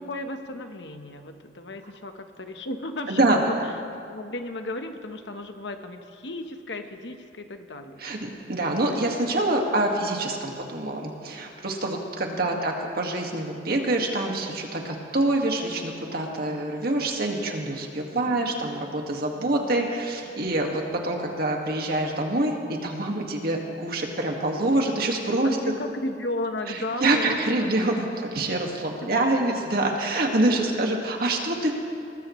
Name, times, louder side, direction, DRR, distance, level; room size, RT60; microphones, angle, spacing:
voice 1, 0.0-8.0 12.5-12.7 19.6-20.0 25.4-27.7 29.1-29.2 31.1-31.6, left 1 dB, 75° left, 6 dB, 1.2 m, -35 dB
voice 2, 3.1-3.4 8.0-22.6 22.8-25.6 27.0-31.7, right 2 dB, 60° right, 1 dB, 1.9 m, -26 dB
22.5 x 19.0 x 3.2 m, 2.4 s
head